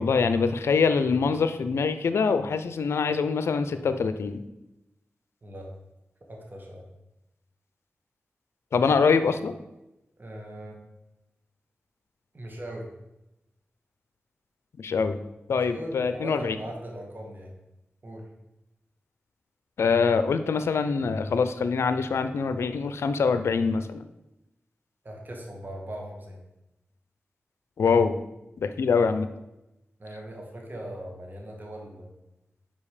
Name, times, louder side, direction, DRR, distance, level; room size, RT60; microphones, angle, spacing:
voice 1, 0.0-4.4 8.7-9.5 14.8-15.2 15.5-16.6 19.8-24.0 27.8-28.1 28.6-29.3, left 5 dB, 85° left, 10 dB, 0.4 m, -24 dB
voice 2, 5.4-5.7 6.3-6.8 10.2-10.8 12.3-12.9 15.5-17.5 18.0-18.3 25.0-26.4 30.0-32.1, right 1 dB, 45° right, 0 dB, 2.0 m, -39 dB
5.3 x 5.1 x 4.9 m, 0.92 s
cardioid pair, 40°, 4 cm